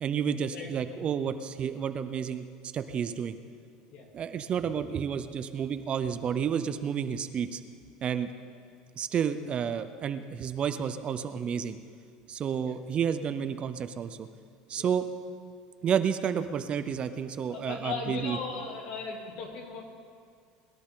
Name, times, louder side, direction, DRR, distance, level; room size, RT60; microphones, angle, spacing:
voice 1, 0.0-2.4 2.7-3.4 4.1-7.6 8.0-8.3 9.0-11.8 12.3-14.3 14.7-15.1 15.8-18.4, right 7 dB, 35° right, 10 dB, 0.6 m, -30 dB
voice 2, 17.5-19.8, left 4 dB, 65° left, 0 dB, 2.9 m, -37 dB
21.5 x 11.5 x 3.8 m, 2.2 s
supercardioid pair, 120°, 3 cm